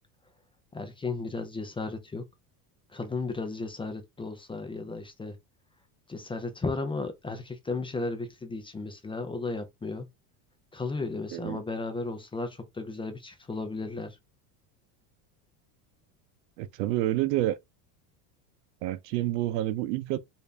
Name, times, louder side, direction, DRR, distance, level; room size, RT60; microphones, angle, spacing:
voice 1, 0.7-2.3 2.9-5.4 6.1-10.1 10.7-14.2, left 3 dB, 10° left, 0.5 m, -34 dB
voice 2, 11.3-11.6 16.6-17.6 18.8-20.2, right 14 dB, 80° right, 0.7 m, -28 dB
3.2 x 2.7 x 3.4 m
supercardioid pair, 120°, 47 cm